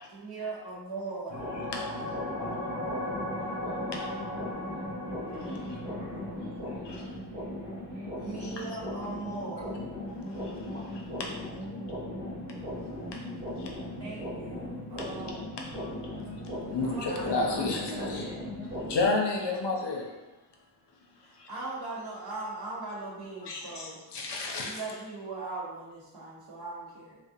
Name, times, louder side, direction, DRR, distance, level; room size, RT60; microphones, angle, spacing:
voice 1, 0.1-1.5 8.1-9.8 14.0-15.6 16.8-17.5 17.8-17.9 21.2-24.0 24.6-27.2, right 3 dB, 55° right, -5 dB, 1.1 m, -39 dB
sound 1, 1.3-19.1, left 1 dB, 85° right, 0.8 m, -36 dB
voice 2, 2.0-4.1 5.0-7.0 8.0-8.2 10.3-11.1, left 1 dB, 15° left, -5 dB, 0.7 m, -50 dB
voice 3, 10.1-10.7 12.8-12.9 13.5-13.7 15.7-18.3 18.6-20.1 21.2-21.5 23.4-24.8, left 3 dB, 65° left, 0 dB, 0.6 m, -32 dB
2.4 x 2.1 x 2.7 m, 1.1 s
cardioid pair, 40°, 46 cm